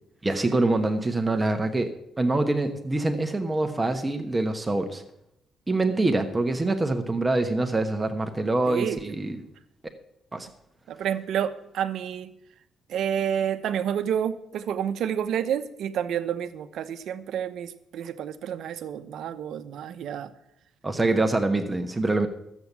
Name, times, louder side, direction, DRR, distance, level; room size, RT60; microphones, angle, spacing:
voice 1, 0.2-1.9 2.2-5.0 5.7-9.5 10.3-10.5 20.8-22.3, right 2 dB, 20° right, 6 dB, 1.1 m, -25 dB
voice 2, 8.7-9.0 10.9-12.3 12.9-20.3 21.0-21.2, right 9 dB, 75° right, 9 dB, 0.8 m, -29 dB
11.5 x 8.1 x 7.2 m, 0.80 s
cardioid pair, 90°, 0 cm